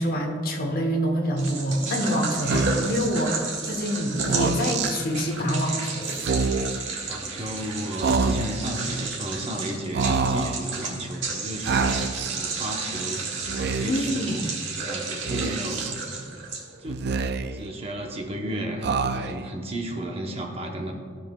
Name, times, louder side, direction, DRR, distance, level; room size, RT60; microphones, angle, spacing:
voice 1, 0.0-6.1 13.8-14.4, equal, 50° left, 3 dB, 1.0 m, -26 dB
sound 1, 1.4-17.0, right 4 dB, 75° right, 1.7 m, -32 dB
Speech, 2.4-3.0 4.1-4.9 6.1-6.8 8.0-8.7 9.9-10.6 11.6-12.4 13.4-14.1 15.3-15.9 16.9-17.7 18.8-19.5, right 4 dB, 55° right, 0.4 m, -26 dB
voice 2, 7.0-12.0 12.2-13.2 13.5-14.5 14.8-16.0 16.8-17.2 17.5-20.9, right 1 dB, 30° right, 2 dB, 0.8 m, -33 dB
15.0 x 6.5 x 2.3 m, 2.1 s
head